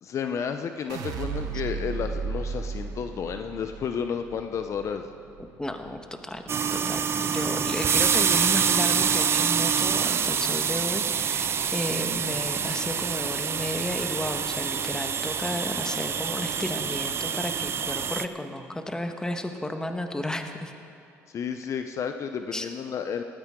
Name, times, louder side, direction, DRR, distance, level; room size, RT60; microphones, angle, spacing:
voice 1, 0.0-5.1 21.3-23.2, left 7 dB, 50° left, 7 dB, 0.7 m, -31 dB
sound 1, 0.9-7.1 7.4-8.0, right 5 dB, 70° right, 1.1 m, -36 dB
voice 2, 5.6-20.7 22.5-22.7, left 1 dB, 10° left, 6 dB, 1.4 m, -33 dB
sound 2, 6.5-18.3, right 7 dB, 40° right, 0.6 m, -26 dB
18.5 x 14.0 x 3.8 m, 2.6 s
supercardioid pair, 70°, 6 cm